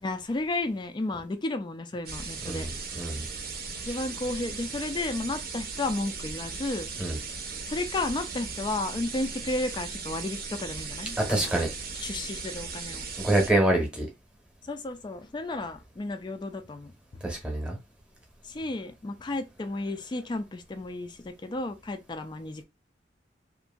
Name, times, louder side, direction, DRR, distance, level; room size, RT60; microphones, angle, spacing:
voice 1, 0.0-2.7 3.8-6.9 7.7-11.6 11.9-13.1 14.6-16.9 18.4-22.6, left 2 dB, 25° left, 0.3 m, -33 dB
sound 1, 2.1-13.5, right 4 dB, 55° right, 0.6 m, -37 dB
voice 2, 2.5-3.3 7.0-7.2 11.2-11.7 13.2-14.1 17.2-17.8, right 1 dB, 5° right, 0.8 m, -26 dB
2.8 x 2.5 x 2.2 m
head